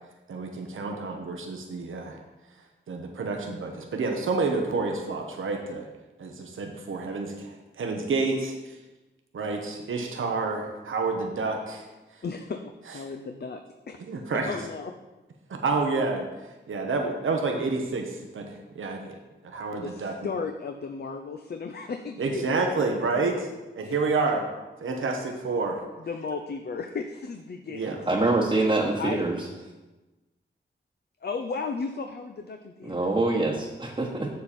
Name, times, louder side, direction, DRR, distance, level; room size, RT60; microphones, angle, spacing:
voice 1, 0.3-2.2 2.9-5.9 6.2-8.8 9.3-11.9 14.1-14.5 15.6-16.2 16.7-19.2 19.4-20.1 22.2-23.5 23.8-24.5 24.8-25.8 27.7-28.0, right 3 dB, 85° right, 2 dB, 1.0 m, -29 dB
voice 2, 12.2-13.6 13.9-14.0 14.5-14.9 19.8-22.8 23.8-23.9 26.0-28.1 29.0-29.2 31.2-33.1, left 4 dB, 55° left, 5 dB, 0.6 m, -35 dB
voice 3, 28.1-29.4 32.8-34.3, right 2 dB, 25° right, -2 dB, 1.1 m, -25 dB
7.5 x 7.1 x 4.3 m, 1.1 s
cardioid pair, 60°, 20 cm